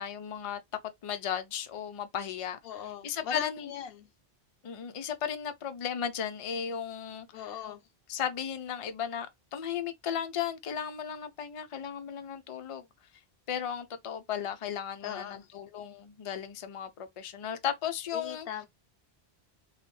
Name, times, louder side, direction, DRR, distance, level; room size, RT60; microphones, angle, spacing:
voice 1, 0.0-2.6 3.0-3.7 4.6-7.3 8.1-12.8 13.5-18.5, left 8 dB, 55° left, 0.4 m, -35 dB
voice 2, 2.6-4.1 7.3-7.8 15.0-15.5 18.1-18.7, left 8 dB, 70° left, 0.7 m, -39 dB
3.1 x 2.1 x 3.1 m
omnidirectional pair, 1.1 m